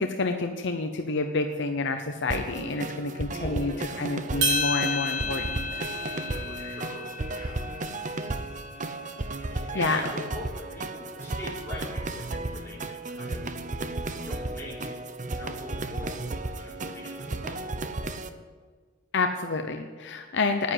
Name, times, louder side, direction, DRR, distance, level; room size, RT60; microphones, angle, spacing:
voice 1, 0.0-3.7 4.0-5.8 9.7-10.0 19.1-20.7, left 3 dB, 55° left, 6 dB, 0.8 m, -28 dB
sound 1, 2.3-18.3, right 2 dB, 35° right, 0.7 m, -34 dB
voice 2, 3.4-4.1 6.5-7.7 8.7-9.0 9.3-13.5 14.2-15.0 15.3-18.2, left 1 dB, 10° left, -6 dB, 4.2 m, -42 dB
sound 2, 4.4-8.8, left 1 dB, 60° right, 3.0 m, -31 dB
10.0 x 9.8 x 9.7 m, 1.5 s
head